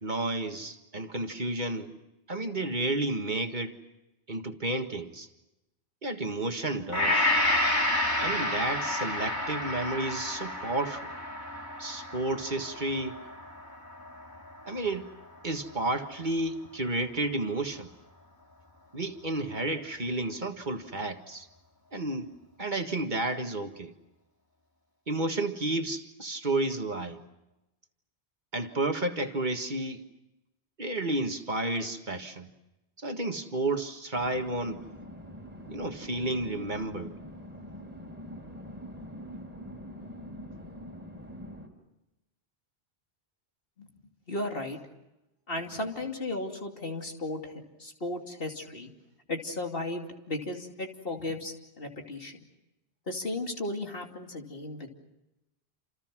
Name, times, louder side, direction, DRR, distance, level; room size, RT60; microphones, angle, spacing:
voice 1, 0.0-1.9 2.3-3.8 4.3-5.3 6.0-7.3 8.2-11.1 11.8-13.2 14.7-15.1 15.4-17.9 18.9-21.5 21.9-22.3 22.6-23.9 25.1-27.2 28.5-30.0 30.8-32.5 33.0-34.9 35.6-37.1, right 2 dB, 45° right, 5 dB, 1.8 m, -31 dB
Gong, 6.9-15.2 15.7-15.8, left 1 dB, 20° left, 3.5 m, -30 dB
sound 1, 34.1-41.7, equal, 10° right, 4.5 m, -44 dB
voice 2, 44.3-44.8 45.5-48.9 49.3-52.4 53.1-54.9, left 2 dB, 55° left, 2 dB, 3.0 m, -35 dB
29.0 x 28.5 x 6.1 m, 0.96 s
omnidirectional pair, 1.1 m